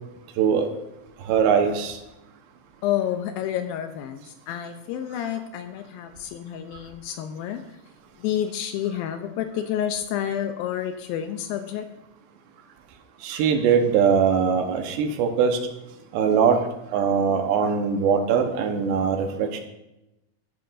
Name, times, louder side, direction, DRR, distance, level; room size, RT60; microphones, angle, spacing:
voice 1, 0.4-0.7 1.2-2.0 13.2-15.6 16.1-16.6 16.9-19.6, right 6 dB, 80° right, 5 dB, 3.2 m, -21 dB
voice 2, 2.8-7.6 8.2-11.9, left 10 dB, 85° left, 7 dB, 2.1 m, -29 dB
14.5 x 11.5 x 2.6 m, 0.94 s
omnidirectional pair, 4.9 m